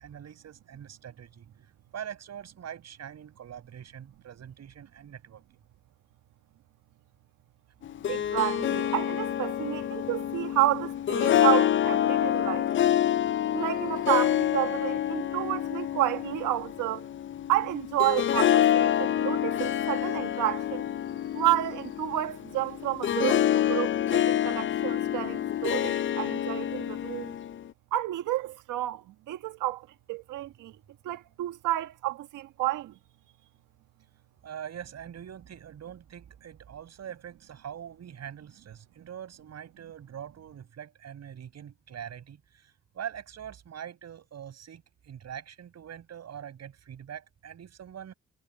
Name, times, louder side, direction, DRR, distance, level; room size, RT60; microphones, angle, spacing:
voice 1, 0.0-1.5 1.9-5.4 34.4-48.1, right 9 dB, 60° right, 7.6 m, -43 dB
Harp, 7.8-27.7, left 11 dB, 40° left, 0.4 m, -27 dB
voice 2, 8.1-12.7 13.5-17.1 17.5-20.8 21.3-27.3 27.9-30.7 31.0-32.9, right 15 dB, 85° right, 1.7 m, -30 dB
cardioid pair, 90°, 30 cm